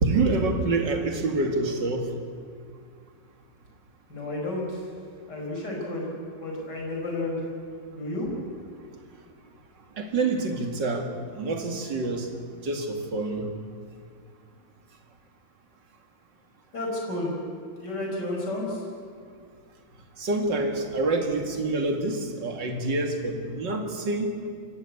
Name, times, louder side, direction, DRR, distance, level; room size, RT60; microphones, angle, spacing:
voice 1, 0.0-2.1 10.0-11.1 11.4-12.3 12.6-13.5 20.2-24.3, right 3 dB, 75° right, 4 dB, 2.8 m, -26 dB
voice 2, 4.1-4.8 5.3-6.1 6.4-7.4 7.9-8.3 16.7-17.3 17.8-18.8, left 2 dB, 65° left, -1 dB, 5.6 m, -31 dB
26.5 x 15.0 x 8.4 m, 2.2 s
omnidirectional pair, 2.0 m